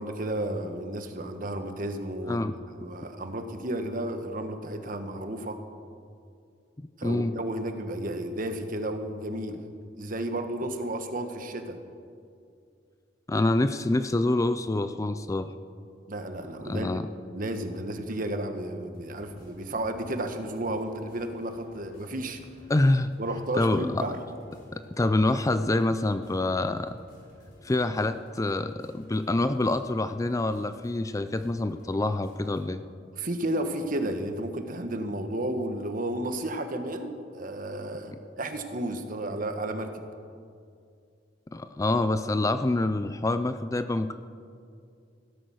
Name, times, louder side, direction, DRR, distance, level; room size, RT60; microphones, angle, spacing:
voice 1, 0.0-2.4 2.7-5.6 7.0-9.6 10.0-11.8 16.1-16.9 17.3-22.4 23.2-24.2 33.2-40.0, right 1 dB, 50° right, 7 dB, 1.3 m, -32 dB
voice 2, 6.8-7.3 13.3-15.5 16.6-17.0 22.7-23.1 23.6-24.0 24.7-27.0 27.6-32.8 41.5-44.1, left 2 dB, 20° left, 11 dB, 0.4 m, -26 dB
sound 1, 18.9-32.6, left 1 dB, 55° left, 5.0 m, -55 dB
16.0 x 13.0 x 6.3 m, 2.4 s
head